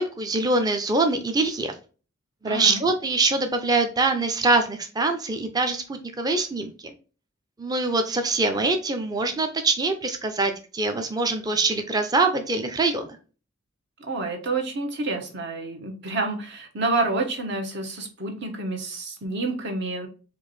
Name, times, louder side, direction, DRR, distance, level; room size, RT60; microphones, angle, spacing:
voice 1, 0.0-1.7 2.4-6.9 7.6-13.1, right 3 dB, 20° right, 6 dB, 0.5 m, -24 dB
voice 2, 2.4-2.8 14.0-20.1, right 3 dB, 55° right, 4 dB, 1.1 m, -28 dB
4.6 x 2.6 x 4.1 m, 0.36 s
head